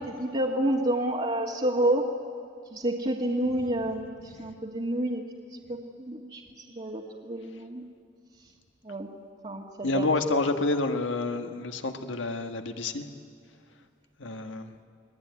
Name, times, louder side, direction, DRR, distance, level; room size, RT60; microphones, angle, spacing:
voice 1, 0.0-2.1 2.7-5.2 5.5-6.4 6.7-7.8 8.8-9.1 9.4-10.1, right 1 dB, 35° right, -2 dB, 1.6 m, -29 dB
voice 2, 9.8-13.1 14.2-14.7, left 2 dB, 80° left, 6 dB, 1.5 m, -29 dB
29.5 x 20.0 x 9.6 m, 2.3 s
head